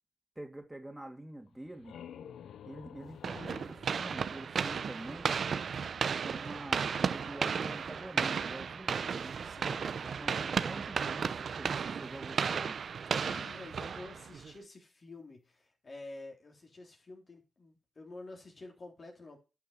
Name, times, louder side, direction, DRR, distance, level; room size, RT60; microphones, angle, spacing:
voice 1, 0.4-2.0 2.6-5.3 6.1-9.4 10.0-12.8, right 1 dB, 15° right, 2.5 m, -46 dB
sound 1, 1.5-5.1, left 9 dB, 85° left, 0.5 m, -51 dB
sound 2, 3.2-14.5, right 6 dB, 70° right, 0.7 m, -34 dB
voice 2, 9.4-9.9 13.1-19.4, left 2 dB, 55° left, 3.4 m, -49 dB
11.0 x 6.0 x 4.2 m
supercardioid pair, 45°, 0 cm